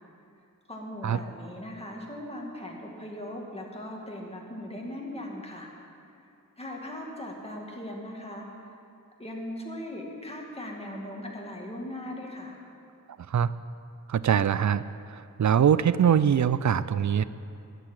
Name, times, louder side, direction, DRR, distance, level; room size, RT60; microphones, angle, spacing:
voice 1, 0.7-5.7 6.6-8.5 9.2-12.6, left 1 dB, 20° left, -1 dB, 2.3 m, -39 dB
voice 2, 14.1-17.2, right 8 dB, 60° right, 15 dB, 0.5 m, -23 dB
13.0 x 6.8 x 9.9 m, 2.6 s
wide cardioid pair, 80°, 33 cm